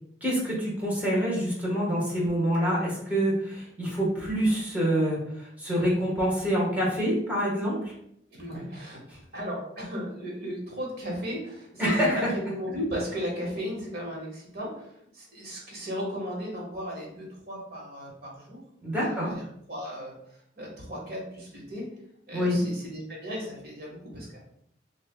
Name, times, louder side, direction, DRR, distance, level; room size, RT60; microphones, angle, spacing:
voice 1, 0.2-7.9 11.8-12.2 18.8-19.4 22.3-22.6, equal, 10° right, -5 dB, 1.3 m, -26 dB
voice 2, 8.3-9.0 9.3-21.9 22.3-24.4, equal, 55° right, -3 dB, 1.4 m, -36 dB
6.1 x 2.6 x 2.2 m, 0.72 s
head